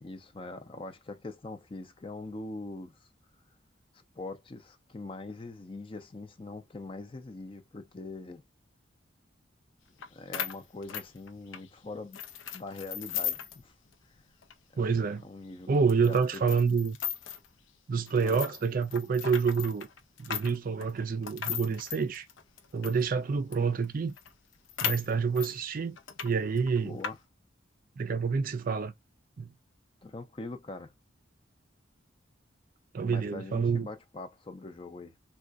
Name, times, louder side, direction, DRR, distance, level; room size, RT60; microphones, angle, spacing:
voice 1, 0.0-3.1 4.2-8.4 10.1-12.2 12.5-13.7 14.7-14.8 15.2-15.8 16.0-16.4 16.7-16.8 18.2-18.4 26.8-27.2 30.0-30.9 33.0-35.1, left 2 dB, 30° left, 0.5 m, -42 dB
sound 1, 10.0-10.1 10.3-11.7 12.1-13.6 13.9-14.0 14.4-14.5 15.1-15.2 15.9-17.5 18.1-23.0 23.5-23.6 23.8-23.9 24.2-25.5 26.0-26.3 26.6-27.1, left 9 dB, 80° left, 0.6 m, -37 dB
voice 2, 14.8-15.3 15.7-17.0 17.9-19.9 20.2-22.3 22.7-24.1 24.8-26.0 26.2-27.0 28.0-28.9 29.4-29.5 32.9-33.9, right 5 dB, 45° right, 0.4 m, -28 dB
3.6 x 2.3 x 2.4 m
head